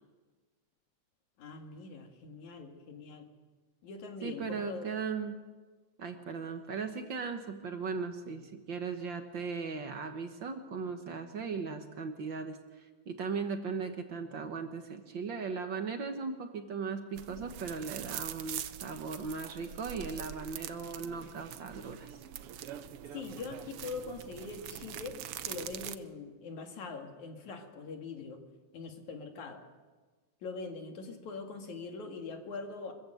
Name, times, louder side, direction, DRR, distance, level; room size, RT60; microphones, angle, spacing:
voice 1, 1.4-3.3 3.8-4.9 23.1-25.2 25.4-28.4 28.7-29.6 30.4-32.9, left 4 dB, 75° left, 4 dB, 3.5 m, -42 dB
voice 2, 4.2-5.4 6.0-22.1, right 5 dB, 55° right, 6 dB, 1.5 m, -38 dB
sound 1, 17.2-26.0, right 11 dB, 70° right, 1.4 m, -43 dB
24.5 x 15.0 x 7.9 m, 1.4 s
omnidirectional pair, 3.4 m